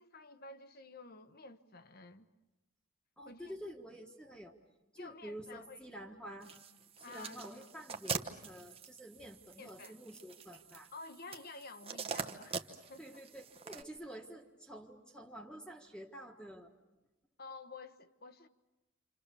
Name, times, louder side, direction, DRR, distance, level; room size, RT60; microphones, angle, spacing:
voice 1, 0.0-2.3 3.2-3.4 5.0-5.8 7.0-7.6 9.6-10.0 10.9-13.2 17.4-18.5, left 3 dB, 45° left, 1.1 m, -51 dB
voice 2, 3.2-4.5 4.9-6.6 7.1-10.9 13.0-16.7, equal, 5° left, 1.5 m, -49 dB
sound 1, 6.4-13.8, right 5 dB, 25° right, 1.1 m, -44 dB
28.5 x 27.5 x 7.0 m
head